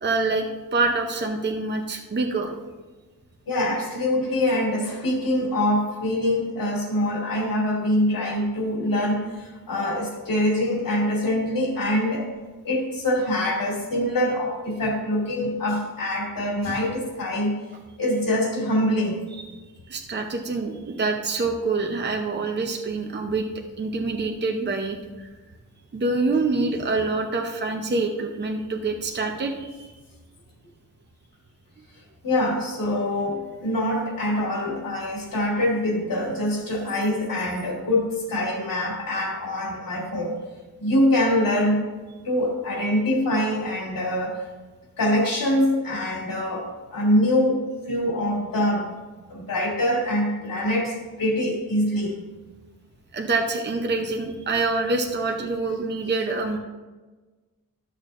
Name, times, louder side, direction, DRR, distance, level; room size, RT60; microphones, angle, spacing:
voice 1, 0.0-0.4 0.7-2.5 19.3-19.5 19.9-23.4 23.8-25.3 25.9-29.9 53.1-56.6, right 3 dB, 30° right, 3 dB, 0.7 m, -26 dB
voice 2, 3.5-12.3 12.6-17.6 18.0-19.2 32.2-40.4 40.8-41.8 42.2-44.4 45.0-48.9 49.3-52.2, left 1 dB, 75° left, -2 dB, 2.7 m, -24 dB
12.5 x 6.5 x 2.5 m, 1.3 s
wide cardioid pair, 130°, 34 cm